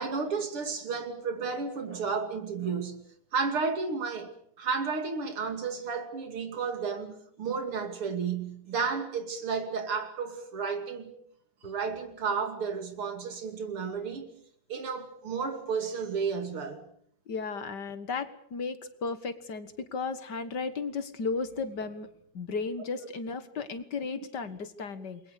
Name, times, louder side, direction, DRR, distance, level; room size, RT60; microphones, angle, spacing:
voice 1, 0.0-3.0 3.3-11.1 11.6-14.3 14.7-16.8, right 5 dB, 85° right, 3.5 m, -32 dB
voice 2, 17.3-22.1 22.3-25.2, left 4 dB, 55° left, 2.0 m, -34 dB
29.0 x 22.0 x 6.6 m
omnidirectional pair, 2.3 m